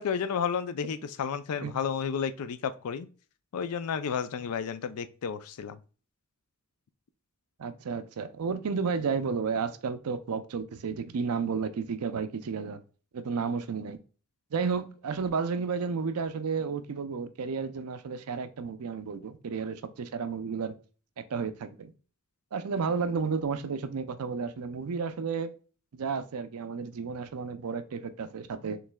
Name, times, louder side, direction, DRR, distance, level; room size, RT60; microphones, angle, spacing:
voice 1, 0.0-3.1 3.5-5.8, left 7 dB, 90° left, 0.4 m, -32 dB
voice 2, 7.6-12.8 13.1-14.0 14.5-20.7 21.2-21.9 22.5-25.5 25.9-28.8, right 5 dB, 90° right, 0.5 m, -32 dB
6.1 x 3.2 x 2.2 m
head